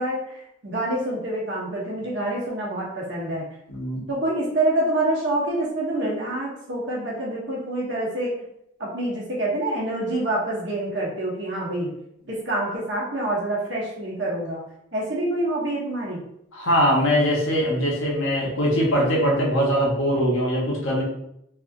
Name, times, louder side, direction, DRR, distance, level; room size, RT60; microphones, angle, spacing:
voice 1, 0.0-3.5 4.1-8.3 8.8-11.9 12.3-14.6 14.9-16.2, right 1 dB, 60° right, -4 dB, 1.0 m, -26 dB
voice 2, 3.7-4.0 16.5-21.0, equal, 80° left, -3 dB, 1.1 m, -22 dB
3.4 x 2.7 x 2.5 m, 0.77 s
head